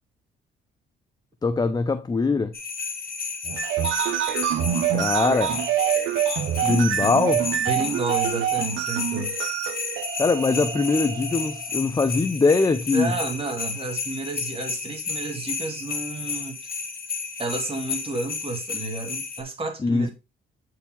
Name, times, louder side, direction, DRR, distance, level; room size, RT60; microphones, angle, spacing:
voice 1, 1.4-2.5 4.9-5.6 6.6-7.5 10.2-13.1 19.8-20.1, left 4 dB, 20° left, 0.6 m, -22 dB
sound 1, 2.5-19.4, left 5 dB, 50° left, 1.9 m, -32 dB
sound 2, 3.4-11.7, right 11 dB, 75° right, 0.8 m, -26 dB
voice 2, 7.6-9.4 12.9-16.7 17.4-20.1, right 3 dB, 30° right, 2.3 m, -31 dB
8.1 x 4.8 x 3.8 m
cardioid pair, 90°, 20 cm